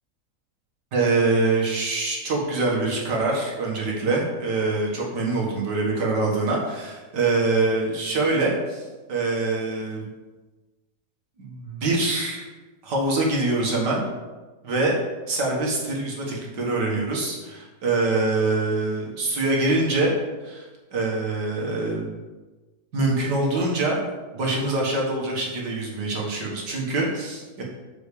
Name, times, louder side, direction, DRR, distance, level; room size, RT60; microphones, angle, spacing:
voice 1, 0.9-8.8 9.1-10.0 11.4-12.4 12.8-14.0 14.6-15.0 15.3-20.1 20.4-22.1 22.9-24.0 24.3-27.6, right 2 dB, 85° right, -2 dB, 2.4 m, -24 dB
6.2 x 5.1 x 6.9 m, 1.2 s
omnidirectional pair, 1.8 m